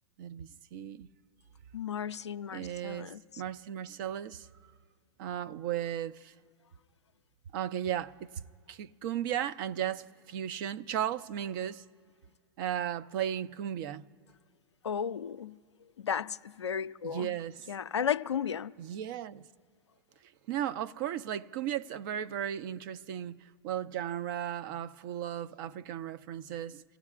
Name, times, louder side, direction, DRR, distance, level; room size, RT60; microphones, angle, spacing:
voice 1, 0.2-1.1 2.5-4.5 5.2-6.3 7.5-8.3 8.7-11.8 12.6-14.1 17.0-17.7 18.8-19.4 20.5-26.8, right 10 dB, 50° right, 0.5 m, -35 dB
voice 2, 1.7-3.2 14.8-15.6 16.0-17.3 17.7-18.7, left 8 dB, 90° left, 0.4 m, -34 dB
29.0 x 16.0 x 2.5 m
hypercardioid pair, 105°, 14 cm